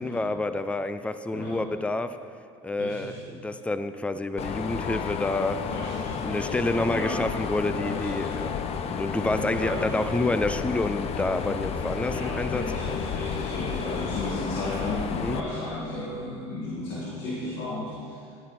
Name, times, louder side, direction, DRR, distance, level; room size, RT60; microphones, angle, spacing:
voice 1, 0.0-2.2 2.6-5.6 6.2-8.5 8.8-12.6 15.2-15.4, left 2 dB, 10° left, 11 dB, 0.5 m, -28 dB
voice 2, 2.8-3.2 5.6-7.2 7.8-8.4 9.1-10.1 12.0-18.4, left 2 dB, 75° left, -6 dB, 2.2 m, -35 dB
Mechanisms, 4.4-15.4, left 6 dB, 45° left, 0.8 m, -32 dB
11.5 x 10.0 x 4.2 m, 2.3 s
supercardioid pair, 100°, 15 cm